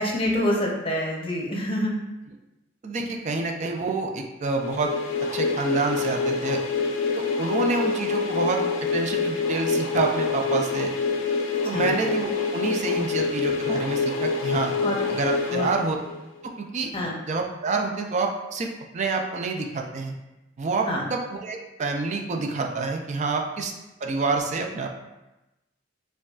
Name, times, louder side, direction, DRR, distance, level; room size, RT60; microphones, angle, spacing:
voice 1, 0.0-1.9 11.7-11.9 13.0-13.1 14.8-15.0 15.5-15.7 16.9-17.2 20.8-21.0, left 1 dB, 30° left, -2 dB, 0.7 m, -26 dB
voice 2, 2.8-4.9 5.3-6.6 7.2-8.6 8.9-10.9 11.6-14.7 15.1-16.0 16.6-16.9 17.3-20.1 20.6-23.7 24.0-24.9, right 3 dB, 35° right, 3 dB, 0.4 m, -27 dB
sound 1, 4.5-16.4, left 4 dB, 90° left, 0.5 m, -26 dB
5.1 x 2.3 x 2.4 m, 1.0 s
head